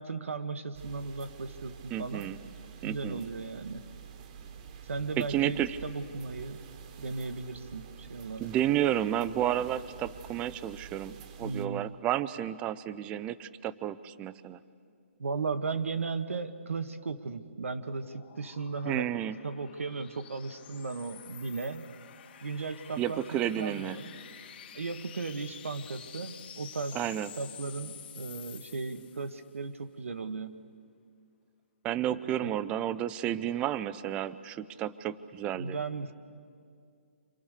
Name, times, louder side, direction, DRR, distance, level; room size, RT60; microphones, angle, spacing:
voice 1, 0.0-2.3 2.8-3.8 4.8-6.6 7.0-8.5 11.4-11.8 15.2-21.9 22.4-23.2 23.6-24.2 24.7-27.0 27.4-30.6 32.4-32.6 35.5-36.1, right 4 dB, 90° right, 9 dB, 1.5 m, -36 dB
sound 1, 0.7-11.7, right 7 dB, 35° right, 1.4 m, -48 dB
voice 2, 1.9-2.4 2.8-3.2 5.2-5.8 8.4-14.6 18.9-19.4 23.0-24.0 26.9-27.3 31.8-35.8, right 11 dB, 15° right, 15 dB, 0.6 m, -31 dB
sound 2, 17.0-29.5, left 9 dB, 50° left, 2.2 m, -50 dB
29.5 x 26.5 x 6.7 m, 2.3 s
hypercardioid pair, 160°, 7 cm